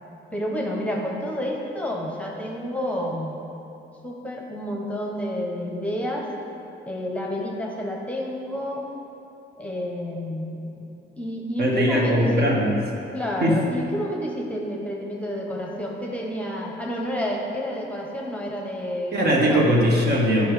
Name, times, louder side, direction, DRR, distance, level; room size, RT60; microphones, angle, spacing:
voice 1, 0.3-3.4 4.0-6.3 6.9-8.9 9.6-12.5 13.1-19.7, equal, 5° left, -1 dB, 1.0 m, -30 dB
voice 2, 11.6-12.8 13.4-13.6 19.1-20.5, equal, 55° right, -3 dB, 1.6 m, -20 dB
8.6 x 5.5 x 4.9 m, 2.9 s
cardioid pair, 90°, 20 cm